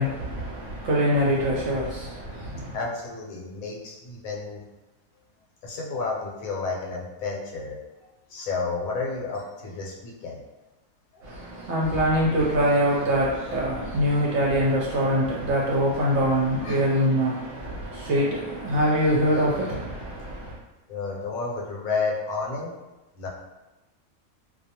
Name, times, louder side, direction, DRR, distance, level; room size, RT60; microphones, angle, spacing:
voice 1, 0.0-2.8 11.2-20.6, equal, 65° right, -4 dB, 0.7 m, -24 dB
voice 2, 2.7-4.6 5.6-7.8 8.3-10.4 16.6-16.8 20.9-22.7 23.2-23.3, left 4 dB, 75° left, -2 dB, 1.0 m, -31 dB
2.3 x 2.2 x 2.8 m, 1.1 s
omnidirectional pair, 1.5 m